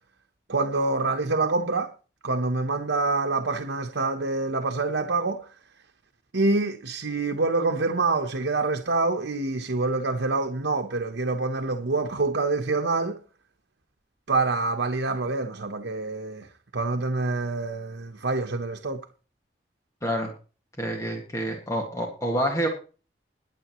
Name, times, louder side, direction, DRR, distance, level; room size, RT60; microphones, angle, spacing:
voice 1, 0.5-1.9 2.2-5.4 6.3-13.2 14.3-16.5 16.7-19.0, right 3 dB, 85° right, 1.0 m, -26 dB
voice 2, 20.0-20.3 20.8-22.7, equal, 15° left, 1.8 m, -27 dB
21.5 x 7.7 x 3.1 m
head